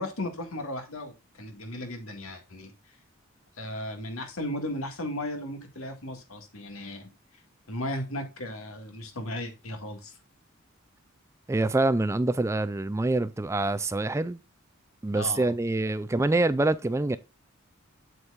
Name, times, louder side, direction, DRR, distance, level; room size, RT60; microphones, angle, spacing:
voice 1, 0.0-2.7 3.6-7.1 7.7-10.1 15.1-15.5, left 1 dB, 80° left, 2.0 m, -35 dB
voice 2, 11.5-14.4 15.0-17.2, right 2 dB, 15° right, 0.4 m, -25 dB
7.9 x 7.4 x 2.4 m
head